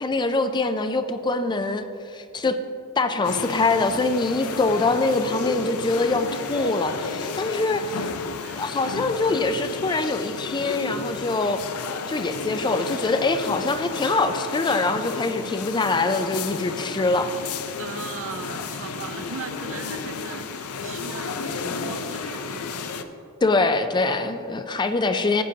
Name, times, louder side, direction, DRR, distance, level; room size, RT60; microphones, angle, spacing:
voice 1, 0.0-1.9 2.1-2.6 3.0-7.8 8.6-11.6 12.1-17.3 23.4-25.4, left 3 dB, 20° left, 9 dB, 0.4 m, -24 dB
sound 1, 3.2-23.0, left 4 dB, 70° left, 0.6 m, -32 dB
voice 2, 17.8-22.7, right 4 dB, 65° right, 7 dB, 0.7 m, -38 dB
14.5 x 8.6 x 2.8 m, 2.6 s
head